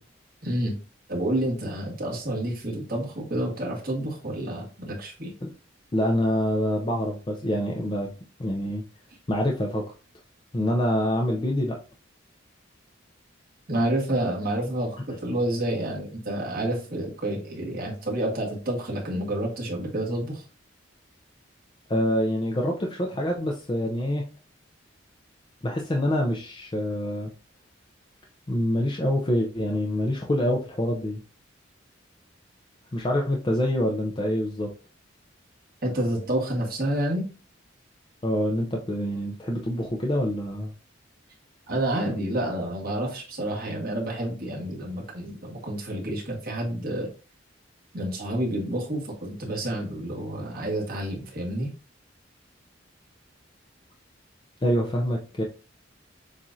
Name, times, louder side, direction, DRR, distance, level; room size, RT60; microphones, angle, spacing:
voice 1, 0.4-0.7 1.1-5.3 13.7-20.4 35.8-37.2 41.7-47.1 47.9-51.7, right 1 dB, 50° right, -2 dB, 1.7 m, -29 dB
voice 2, 5.9-8.1 8.4-8.8 9.3-9.9 10.5-11.8 21.9-24.2 25.6-27.3 28.5-31.2 32.9-34.7 38.2-40.7 54.6-55.4, equal, 25° left, -1 dB, 0.5 m, -26 dB
7.2 x 2.5 x 2.6 m, 0.35 s
head